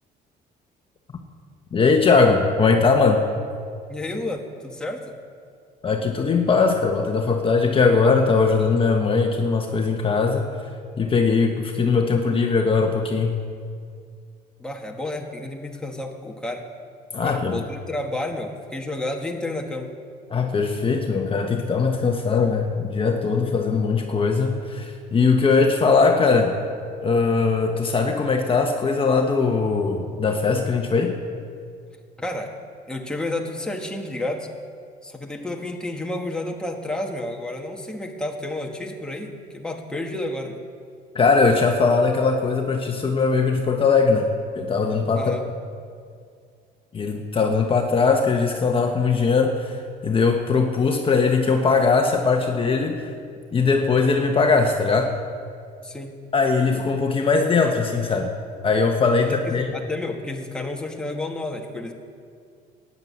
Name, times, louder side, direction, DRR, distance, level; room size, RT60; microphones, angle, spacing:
voice 1, 1.7-3.3 5.8-10.4 11.0-13.4 17.1-17.6 20.3-26.6 27.0-31.2 41.1-45.3 46.9-53.1 53.5-55.1 56.3-58.3 58.6-59.7, left 4 dB, 30° left, 3 dB, 1.2 m, -20 dB
voice 2, 3.9-5.1 14.6-16.6 17.2-19.9 32.2-32.5 32.9-34.5 35.0-40.6 45.2-45.5 55.8-56.2 59.2-61.9, left 1 dB, 5° left, 1 dB, 1.7 m, -31 dB
13.0 x 9.6 x 8.5 m, 2.2 s
cardioid pair, 110°, 17 cm